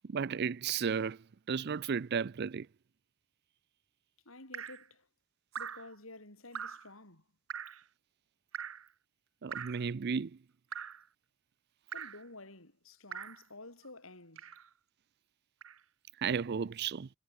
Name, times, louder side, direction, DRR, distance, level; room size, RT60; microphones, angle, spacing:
voice 1, 0.0-1.2 1.5-2.7 9.4-10.4 16.2-17.1, right 6 dB, 50° right, 0.4 m, -33 dB
voice 2, 4.2-5.1 5.6-7.3 11.9-14.5, left 2 dB, 75° left, 6.6 m, -51 dB
Drip, 4.5-4.9 5.5-5.9 6.5-6.9 7.5-7.8 8.5-8.9 9.5-9.9 10.7-11.1 11.9-12.2 13.1-13.4 14.4-14.7 15.6-15.8, right 7 dB, 70° right, 1.3 m, -42 dB
head